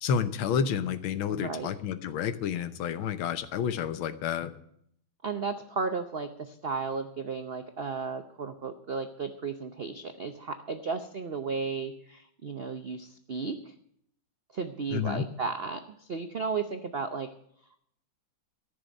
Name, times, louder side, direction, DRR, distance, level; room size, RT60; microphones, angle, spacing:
voice 1, 0.0-4.5 14.9-15.2, left 7 dB, 90° left, 12 dB, 1.7 m, -30 dB
voice 2, 1.3-1.7 5.2-13.7 14.5-17.3, right 4 dB, 90° right, 8 dB, 0.5 m, -34 dB
14.0 x 6.9 x 9.0 m, 0.70 s
omnidirectional pair, 2.2 m